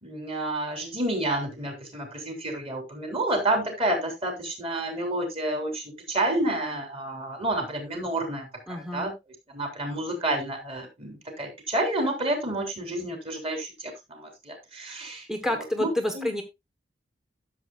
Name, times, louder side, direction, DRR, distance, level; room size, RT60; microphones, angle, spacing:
voice 1, 0.0-9.1 9.5-15.3 15.8-15.9 16.1-16.3, right 1 dB, 30° right, 3 dB, 3.3 m, -29 dB
voice 2, 8.7-9.2 15.3-16.4, left 1 dB, 5° right, 5 dB, 1.0 m, -29 dB
12.5 x 7.4 x 2.3 m, 0.21 s
head